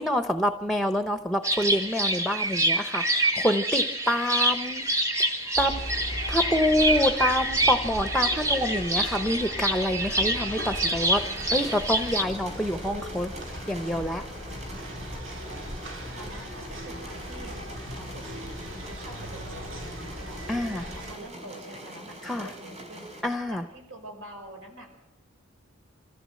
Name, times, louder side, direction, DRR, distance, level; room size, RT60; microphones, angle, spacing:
voice 1, 0.0-4.8 5.6-5.8 6.3-11.2 11.5-14.2 20.5-20.9 22.2-22.5 23.2-23.6, equal, ahead, 7 dB, 0.8 m, -27 dB
sound 1, 1.4-12.2, right 1 dB, 15° right, 1.8 m, -27 dB
part two, 5.5-21.1, equal, 60° right, 3.8 m, -38 dB
sound 2, 11.1-23.2, equal, 30° right, 4.4 m, -44 dB
voice 2, 16.2-17.6 17.9-18.5 18.8-20.4 21.0-23.2 23.5-24.9, right 1 dB, 75° right, 3 dB, 5.2 m, -46 dB
25.5 x 14.5 x 7.6 m, 0.93 s
head